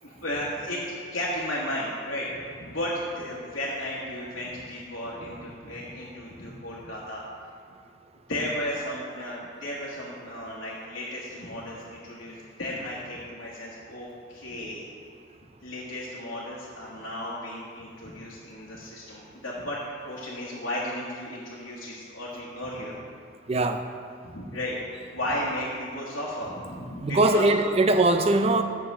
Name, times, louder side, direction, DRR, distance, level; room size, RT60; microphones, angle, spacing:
voice 1, 0.0-7.2 8.3-14.9 15.6-19.8 20.0-23.0 24.2-24.7 25.1-27.5, left 1 dB, 65° left, -8 dB, 1.4 m, -34 dB
voice 2, 23.5-23.8 27.0-28.6, right 2 dB, 30° right, 7 dB, 0.4 m, -21 dB
6.8 x 5.6 x 6.5 m, 2.3 s
head